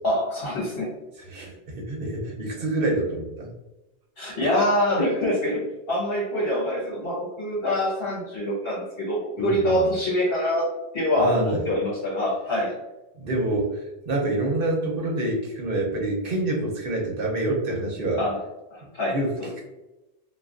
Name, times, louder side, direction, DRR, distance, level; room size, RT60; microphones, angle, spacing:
voice 1, 0.0-0.9 4.2-12.8 18.2-18.4 18.7-19.6, left 1 dB, 65° left, -5 dB, 1.4 m, -25 dB
voice 2, 1.3-3.5 9.4-9.9 11.2-11.6 13.2-18.2 19.1-19.6, right 2 dB, 60° right, -1 dB, 0.9 m, -27 dB
3.2 x 2.2 x 2.4 m, 1.0 s
omnidirectional pair, 1.1 m